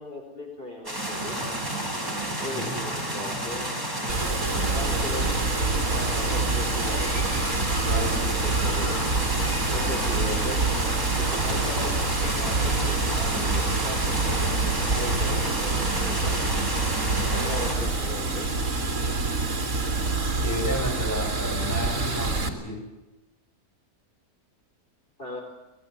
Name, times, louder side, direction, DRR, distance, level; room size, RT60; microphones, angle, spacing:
voice 1, 0.0-1.5 2.4-3.7 4.2-5.3 5.9-7.4 7.9-9.0 9.7-10.7 11.2-14.4 14.9-16.4 17.3-18.6 25.2-25.4, left 1 dB, 40° left, 0 dB, 4.6 m, -38 dB
sound 1, 0.8-17.7, right 1 dB, 15° right, 6.0 m, -31 dB
voice 2, 2.5-2.9 7.8-8.4 9.8-10.0 15.5-15.8 17.8-17.9 20.4-22.9, equal, 10° left, 1 dB, 6.0 m, -33 dB
Water, 4.1-22.5, right 3 dB, 65° right, 3.2 m, -26 dB
sound 2, 6.8-11.9 12.2-13.0 13.4-14.3 14.6-15.8 16.2-17.2 17.7-18.7, left 2 dB, 80° left, 4.1 m, -43 dB
25.0 x 19.5 x 8.1 m, 1.0 s
omnidirectional pair, 1.5 m